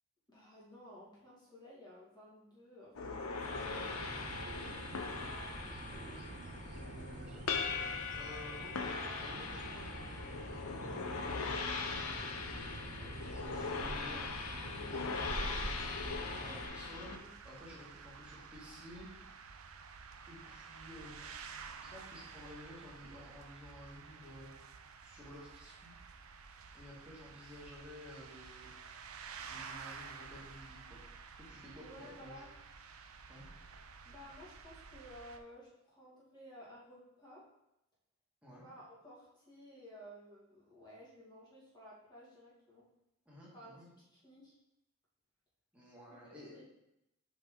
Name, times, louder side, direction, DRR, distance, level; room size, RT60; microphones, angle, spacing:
voice 1, 0.3-4.0 31.8-32.5 34.0-37.4 38.6-42.9 43.5-44.6 46.1-46.6, equal, 20° left, -7 dB, 2.1 m, -55 dB
sound 1, 2.9-17.2, left 4 dB, 85° left, 0.6 m, -40 dB
sound 2, 3.4-16.7, right 2 dB, 35° right, 0.4 m, -47 dB
voice 2, 4.4-5.3 5.6-12.7 13.0-15.7 15.9-17.2 17.4-19.1 20.3-21.5 21.8-24.5 25.0-25.9 26.7-28.7 29.4-31.0 31.4-32.4 33.3-33.5 38.4-38.6 43.3-43.9 45.7-46.5, left 1 dB, 5° right, -7 dB, 2.0 m, -53 dB
sound 3, 16.1-35.4, right 5 dB, 90° right, 0.5 m, -51 dB
5.6 x 5.2 x 3.8 m, 0.88 s
head